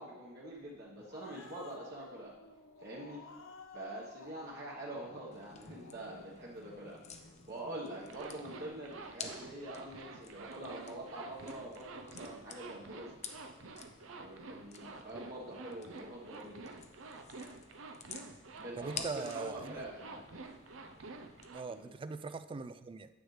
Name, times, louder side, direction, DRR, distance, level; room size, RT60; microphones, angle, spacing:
voice 1, 0.0-2.3 2.8-3.2 3.7-13.1 14.0-16.7 18.6-20.2 21.7-21.9, right 1 dB, 55° right, -5 dB, 1.3 m, -45 dB
Growling, 0.7-7.5, left 3 dB, 75° left, 0.8 m, -55 dB
sound 1, 5.3-21.5, left 5 dB, 35° left, 0.6 m, -52 dB
Zipper (clothing), 8.1-21.6, right 3 dB, 80° right, 0.7 m, -49 dB
voice 2, 18.8-19.8 21.5-23.1, right 4 dB, 25° right, 12 dB, 0.3 m, -41 dB
9.3 x 7.9 x 3.3 m, 1.1 s
head